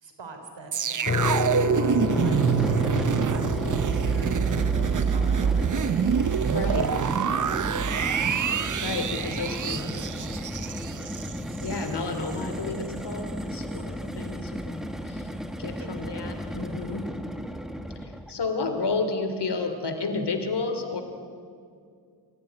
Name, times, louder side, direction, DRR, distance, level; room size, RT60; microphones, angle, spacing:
voice 1, 0.0-5.9 6.2-8.1 9.6-10.9 13.6-13.7 15.8-15.9 17.0-17.1, right 3 dB, 85° right, 5 dB, 3.7 m, -44 dB
sound 1, 0.7-11.9 12.2-12.4, right 7 dB, 45° right, 0.7 m, -26 dB
sound 2, 1.0-13.9, left 2 dB, 35° left, 2.7 m, -34 dB
sound 3, 1.9-18.3, equal, ahead, 1.6 m, -34 dB
voice 2, 6.5-6.9 8.8-10.0 11.6-15.3 15.6-17.1 18.0-21.0, left 4 dB, 70° left, 7 dB, 3.0 m, -31 dB
24.5 x 16.0 x 9.7 m, 2.3 s
cardioid pair, 65°, 42 cm